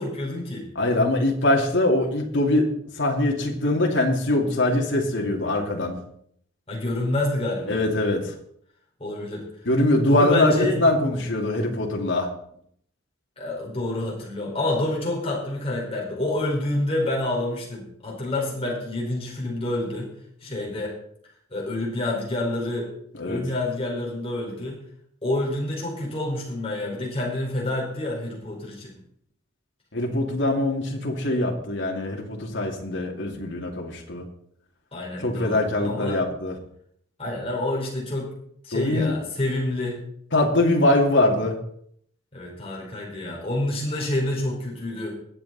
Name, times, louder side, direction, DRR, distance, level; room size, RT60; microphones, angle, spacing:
voice 1, 0.0-0.7 6.7-7.8 9.0-9.4 10.1-10.8 13.4-20.1 20.4-20.9 21.5-22.9 23.2-24.8 25.2-28.9 34.9-36.2 37.2-38.3 38.6-40.0 42.3-45.1, left 1 dB, 30° left, -3 dB, 4.9 m, -28 dB
voice 2, 0.8-6.0 7.7-8.3 9.7-12.3 23.1-23.4 29.9-34.3 35.2-36.6 38.7-39.1 40.3-41.6, left 1 dB, 65° left, 1 dB, 2.5 m, -22 dB
21.5 x 7.9 x 4.2 m, 0.67 s
head